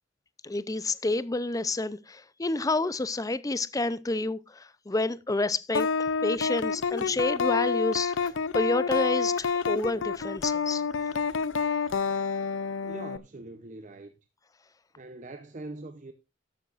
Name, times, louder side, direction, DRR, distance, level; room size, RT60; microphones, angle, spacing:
voice 1, 0.4-5.9 6.2-10.8, left 2 dB, 20° left, 0.5 m, -29 dB
sound 1, 5.7-13.2, left 5 dB, 90° left, 0.6 m, -28 dB
voice 2, 12.8-14.1 14.9-16.1, right 2 dB, 40° right, 0.8 m, -42 dB
13.0 x 12.0 x 2.5 m
head